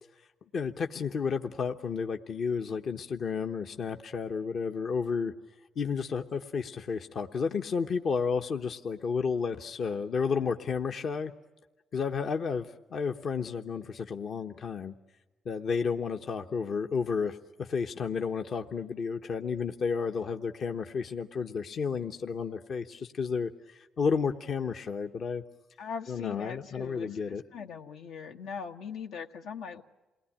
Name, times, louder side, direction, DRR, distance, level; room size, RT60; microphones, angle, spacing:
voice 1, 0.5-5.3 5.8-11.3 11.9-14.9 15.4-25.4 26.1-27.4, left 5 dB, 55° left, 5 dB, 1.0 m, -32 dB
voice 2, 25.8-29.8, left 6 dB, 85° left, 4 dB, 1.5 m, -40 dB
28.0 x 19.5 x 10.0 m, 1.2 s
cardioid pair, 90°, 0 cm